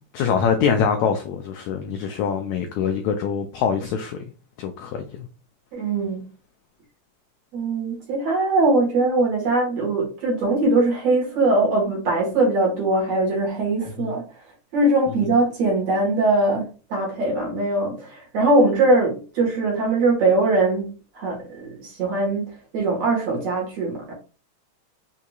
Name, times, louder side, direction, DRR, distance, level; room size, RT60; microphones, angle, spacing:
voice 1, 0.1-4.2 4.6-5.3 14.0-14.1, left 7 dB, 85° left, 1.6 m, -24 dB
voice 2, 5.7-6.3 7.5-14.2 14.7-24.1, right 2 dB, 55° right, 2.4 m, -21 dB
6.3 x 2.8 x 2.3 m
omnidirectional pair, 3.9 m